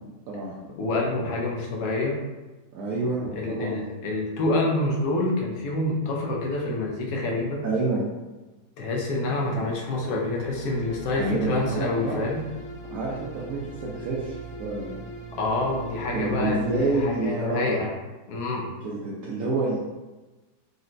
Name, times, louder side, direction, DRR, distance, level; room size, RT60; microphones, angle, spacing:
voice 1, 0.8-2.2 3.3-7.6 8.8-12.4 15.3-17.9 18.3-18.7, left 2 dB, 75° left, -2 dB, 1.2 m, -27 dB
voice 2, 2.7-3.8 7.6-8.0 11.2-12.2 12.8-15.1 16.1-17.8 18.8-19.9, right 3 dB, 70° right, -6 dB, 1.0 m, -28 dB
sound 1, 9.2-17.3, right 2 dB, 50° left, 1.1 m, -41 dB
3.9 x 2.1 x 2.5 m, 1.2 s
omnidirectional pair, 1.7 m